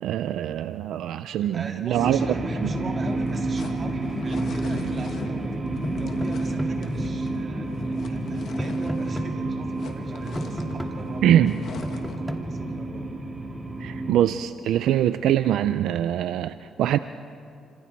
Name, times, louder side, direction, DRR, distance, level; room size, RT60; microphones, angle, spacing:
voice 1, 0.0-2.2 11.2-11.6 13.8-17.0, right 11 dB, 80° right, 12 dB, 0.5 m, -23 dB
voice 2, 1.4-5.5 6.0-11.5 11.8-13.1, right 3 dB, 45° right, 1 dB, 3.5 m, -41 dB
sound 1, 1.9-14.2, right 2 dB, 25° right, 3.0 m, -29 dB
sound 2, 3.0-9.3 9.6-12.3, left 5 dB, 65° left, 2.3 m, -42 dB
sound 3, 5.8-6.7 8.6-9.3 10.4-10.9 11.8-12.4, equal, ahead, 2.1 m, -32 dB
29.5 x 26.5 x 4.6 m, 2.5 s
cardioid pair, 90°, 0 cm